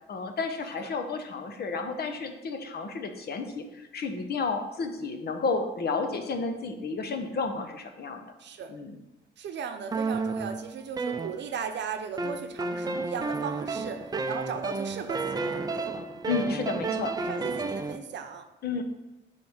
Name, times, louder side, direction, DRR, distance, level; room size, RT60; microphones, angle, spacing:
voice 1, 0.1-8.2 8.7-9.0 16.3-17.2 18.6-18.8, left 4 dB, 55° left, 5 dB, 0.9 m, -31 dB
voice 2, 8.4-8.7 9.4-16.0 17.2-18.5, right 7 dB, 60° right, 7 dB, 0.7 m, -37 dB
sound 1, 9.9-11.8 12.2-18.0, right 3 dB, 20° right, 0.5 m, -32 dB
7.6 x 3.3 x 5.6 m, 0.97 s
cardioid pair, 90°, 20 cm